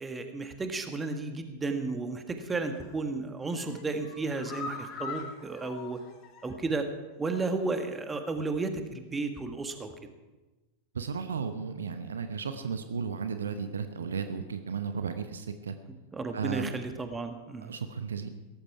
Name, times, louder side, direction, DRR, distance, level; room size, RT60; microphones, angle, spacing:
voice 1, 0.0-6.0 6.4-6.9 7.2-9.9 16.1-17.7, right 3 dB, 15° right, 7 dB, 1.6 m, -33 dB
sound 1, 2.6-3.0 3.4-6.8 7.1-7.2 7.6-7.7, left 4 dB, 35° left, 2.6 m, -43 dB
voice 2, 10.9-15.7 16.3-16.7 17.6-18.3, right 6 dB, 70° right, 9 dB, 0.9 m, -34 dB
17.5 x 14.0 x 4.8 m, 1.2 s
figure-of-eight pair, 90°, 0 cm